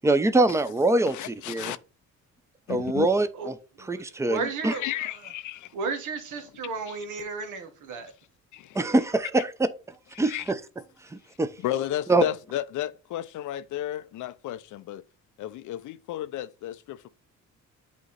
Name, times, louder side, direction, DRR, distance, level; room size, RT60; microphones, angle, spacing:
voice 1, 0.0-1.7 2.7-3.5 3.9-4.7 8.7-9.5 10.2-10.6 11.1-11.5 12.1-12.2, right 2 dB, 10° right, 0.6 m, -24 dB
voice 2, 1.1-1.8 2.7-3.1 4.7-5.7 6.9-7.0 8.5-8.9 10.2-10.4 11.6-15.0 15.4-17.1, left 12 dB, 75° left, 0.6 m, -33 dB
voice 3, 3.8-5.1 5.7-8.1, right 4 dB, 80° right, 1.5 m, -34 dB
8.2 x 3.1 x 4.1 m
cardioid pair, 90°, 30 cm